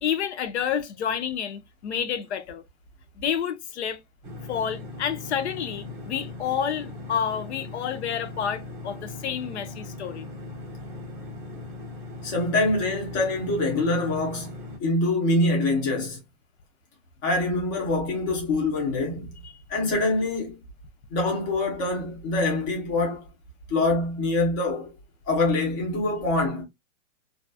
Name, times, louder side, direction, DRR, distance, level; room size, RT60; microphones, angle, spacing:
voice 1, 0.0-2.6 3.2-4.0 4.5-10.3 19.4-19.5, left 8 dB, 55° left, 0.6 m, -29 dB
sound 1, 4.2-14.8, left 2 dB, 20° right, 0.9 m, -39 dB
voice 2, 12.2-16.2 17.2-19.3 19.7-20.6 21.1-23.2 23.7-24.9 25.3-26.6, left 2 dB, 15° left, 0.6 m, -25 dB
2.8 x 2.3 x 2.6 m
hypercardioid pair, 165°, 40 cm